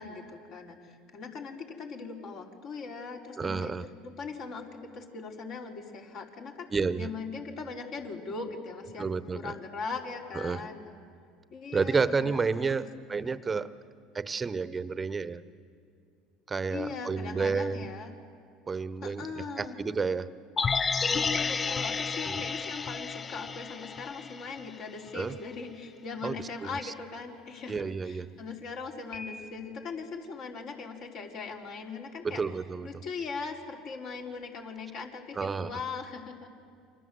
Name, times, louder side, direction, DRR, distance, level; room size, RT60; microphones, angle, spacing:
voice 1, 0.0-3.7 4.0-6.7 7.0-9.1 9.3-11.0 11.5-13.1 16.7-18.1 19.0-19.8 21.1-32.4 32.8-36.5, left 4 dB, 55° left, 0 dB, 4.6 m, -40 dB
voice 2, 3.4-3.9 6.7-7.1 9.0-9.5 10.3-10.7 11.7-13.7 14.1-15.4 16.5-17.9 18.7-20.3 22.3-22.4 25.1-25.3 26.2-26.9 27.7-28.3 32.2-32.9 35.3-35.7, right 4 dB, 25° right, 13 dB, 1.0 m, -31 dB
sound 1, 20.6-24.8 25.1-25.2, left 5 dB, 30° left, 0.6 m, -31 dB
Piano, 29.1-30.1, left 3 dB, 80° left, 3.4 m, -45 dB
29.0 x 24.5 x 7.9 m, 2.3 s
hypercardioid pair, 80°, 0 cm